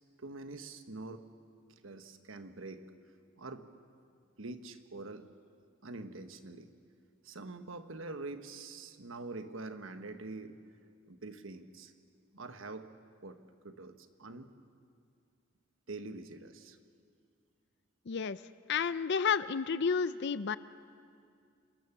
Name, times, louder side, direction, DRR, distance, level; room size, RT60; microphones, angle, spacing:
voice 1, 0.2-1.3 1.8-2.8 3.4-3.7 4.4-5.3 5.8-6.7 7.2-10.6 11.1-11.9 12.3-12.9 13.2-13.4 13.6-14.5 15.9-16.8, right 3 dB, 75° right, 8 dB, 1.3 m, -45 dB
voice 2, 18.1-18.4 18.7-20.6, left 6 dB, 55° left, 15 dB, 0.5 m, -31 dB
28.0 x 19.5 x 7.2 m, 2.3 s
head